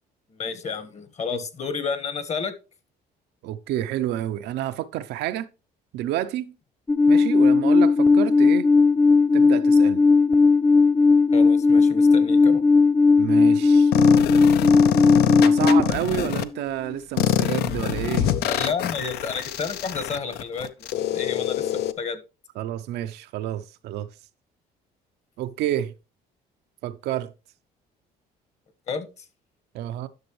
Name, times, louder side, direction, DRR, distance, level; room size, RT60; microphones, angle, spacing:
voice 1, 0.3-2.5 11.3-12.6 18.4-22.2 28.9-29.3, left 5 dB, 40° left, 1.3 m, -31 dB
voice 2, 3.4-5.5 5.9-6.5 7.1-8.7 9.3-10.0 13.2-13.9 15.4-18.3 22.6-24.1 25.4-25.9 26.8-27.3 29.7-30.1, right 12 dB, 80° right, 0.6 m, -29 dB
Alarm, 6.9-15.8, left 4 dB, 15° left, 0.5 m, -17 dB
sound 1, 13.9-16.4 17.2-21.9, left 11 dB, 70° left, 0.6 m, -25 dB
10.5 x 6.1 x 3.1 m
cardioid pair, 110°, 17 cm